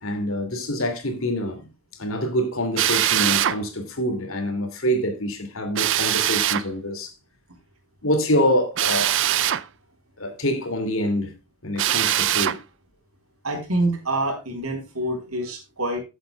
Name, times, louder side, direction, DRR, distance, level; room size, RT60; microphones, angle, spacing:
voice 1, 0.0-7.1 8.0-9.2 10.2-11.3 11.6-12.6, equal, 70° left, 2.6 m, -26 dB
Drill, 2.8-3.6 5.7-6.7 8.8-9.6 11.8-12.6, right 12 dB, 55° right, 0.5 m, -22 dB
voice 2, 13.4-16.0, right 1 dB, 80° right, 4.0 m, -26 dB
14.5 x 8.1 x 2.3 m
head